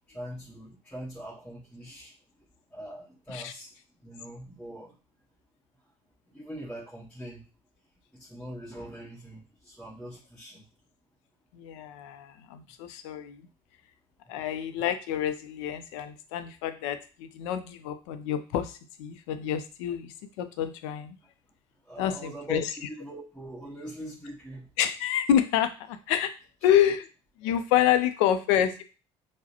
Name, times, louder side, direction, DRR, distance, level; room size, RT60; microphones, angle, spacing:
voice 1, 0.1-2.1 2.7-3.7 4.0-4.9 6.3-7.4 8.2-10.6 21.9-24.7, right 1 dB, 5° left, -8 dB, 1.3 m, -42 dB
voice 2, 11.5-13.5 14.3-21.2 22.0-22.7 24.8-26.3 26.6-27.1 27.4-28.8, left 10 dB, 85° left, 10 dB, 0.5 m, -28 dB
4.7 x 2.1 x 2.8 m, 0.34 s
supercardioid pair, 85°, 15 cm